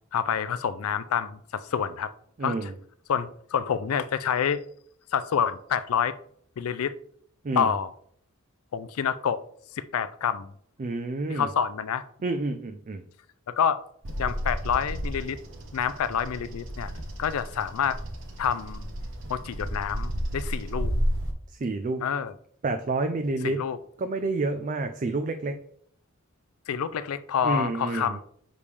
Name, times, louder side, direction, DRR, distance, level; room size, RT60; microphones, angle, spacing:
voice 1, 0.1-2.1 2.4-2.7 3.1-4.6 5.1-6.1 6.6-6.9 7.6-7.9 8.7-9.4 9.7-10.5 11.3-12.0 13.5-13.8 14.2-15.4 15.7-16.9 17.2-18.0 18.4-18.8 19.3-20.9 22.0-22.3 23.4-23.8 26.7-28.2, left 7 dB, 80° left, 0.4 m, -27 dB
voice 2, 2.4-2.8 7.4-7.7 10.8-11.5 12.2-13.0 21.6-22.0 22.6-23.6 24.0-25.6 27.4-28.2, right 3 dB, 35° right, 0.4 m, -29 dB
Bird vocalization bird call bird song, 14.0-21.3, equal, 65° right, 1.0 m, -32 dB
6.8 x 5.1 x 3.3 m
head